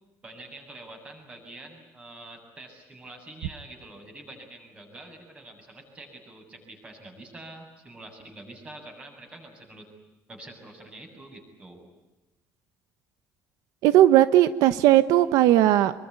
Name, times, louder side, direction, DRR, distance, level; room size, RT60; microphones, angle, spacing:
voice 1, 0.2-9.9 10.3-11.9, right 2 dB, 20° right, 3 dB, 7.3 m, -46 dB
voice 2, 13.8-15.9, right 13 dB, 90° right, 13 dB, 1.1 m, -18 dB
26.5 x 23.0 x 9.6 m, 1.1 s
cardioid pair, 165°, 6 cm